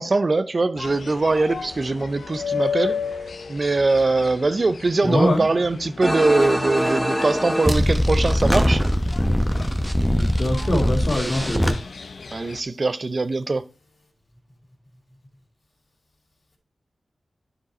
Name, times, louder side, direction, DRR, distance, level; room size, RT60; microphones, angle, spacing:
voice 1, 0.0-3.0 3.5-8.8 12.3-13.6, right 3 dB, 50° right, 0.6 m, -22 dB
sound 1, 0.8-12.6, left 6 dB, 80° left, 0.7 m, -34 dB
voice 2, 5.0-5.4 10.1-11.8, left 1 dB, 55° left, 2.4 m, -23 dB
sound 2, 6.0-11.7, equal, ahead, 1.1 m, -22 dB
9.6 x 5.1 x 4.2 m
cardioid pair, 60°, 0 cm